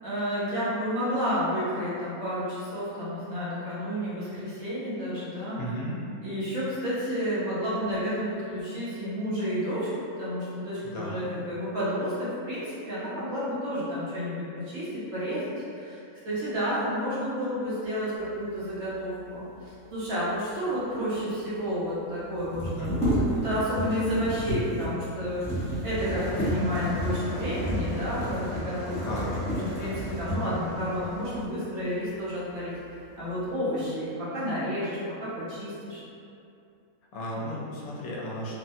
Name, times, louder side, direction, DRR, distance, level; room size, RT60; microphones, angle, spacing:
voice 1, 0.0-5.6 6.2-16.0 16.2-29.3 29.6-32.7 33.2-36.0, equal, 70° right, -11 dB, 1.3 m, -31 dB
voice 2, 5.5-6.0 10.8-11.4 22.6-23.0 29.0-29.3 37.1-38.5, equal, 80° left, -5 dB, 1.1 m, -35 dB
sound 1, 20.9-21.0 21.1-21.2 22.3-30.7 31.4-31.5 31.9-32.6 32.9-33.5, equal, 10° left, 0.4 m, -31 dB
sound 2, 26.0-31.4, left 1 dB, 25° right, 0.8 m, -40 dB
3.2 x 2.1 x 2.6 m, 2.6 s
omnidirectional pair, 1.5 m